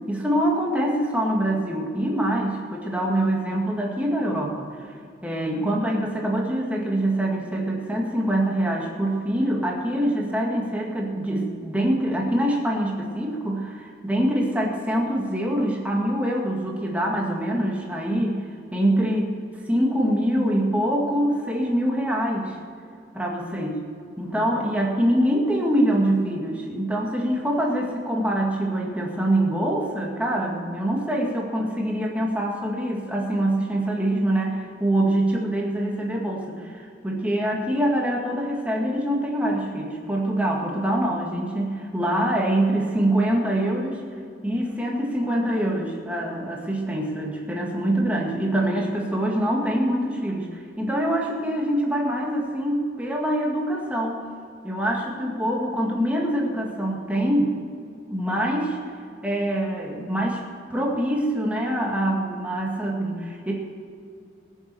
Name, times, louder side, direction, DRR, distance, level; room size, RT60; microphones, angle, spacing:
voice 1, 0.1-4.9 5.2-18.4 18.7-19.3 19.7-22.6 23.1-23.7 24.2-44.0 44.4-54.2 54.6-57.5 58.1-58.8 59.2-60.4 60.7-63.5, right 1 dB, 10° right, -2 dB, 2.0 m, -24 dB
20.0 x 7.3 x 6.9 m, 2.3 s
head